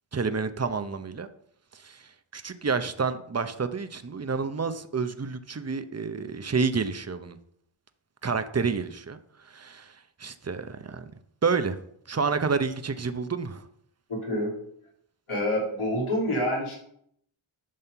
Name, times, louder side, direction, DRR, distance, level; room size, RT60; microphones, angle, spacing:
voice 1, 0.1-1.3 1.7-2.0 2.3-7.4 8.2-9.2 9.4-9.9 10.2-11.0 11.4-11.8 12.1-13.6, right 5 dB, 30° right, 10 dB, 0.9 m, -29 dB
voice 2, 15.3-16.7, left 1 dB, 80° left, -3 dB, 3.7 m, -27 dB
11.0 x 4.2 x 6.9 m, 0.69 s
cardioid pair, 40°, 50 cm